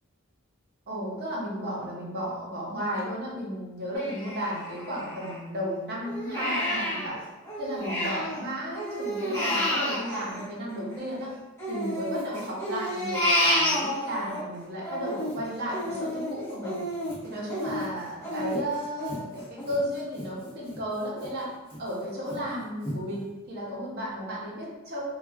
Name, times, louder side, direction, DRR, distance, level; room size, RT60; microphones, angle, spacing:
voice 1, 0.9-7.2 7.6-11.3 11.7-16.8 17.2-21.5 21.8-25.0, equal, 50° right, -5 dB, 0.8 m, -34 dB
Crying sobbing, 4.0-5.6 6.0-8.4 8.7-11.1 11.6-14.4 14.8-20.3 20.7-20.8 21.2-21.8 22.3-22.4 22.8-23.0, left 1 dB, 15° left, 0.9 m, -30 dB
3.0 x 2.3 x 2.3 m, 1.1 s
head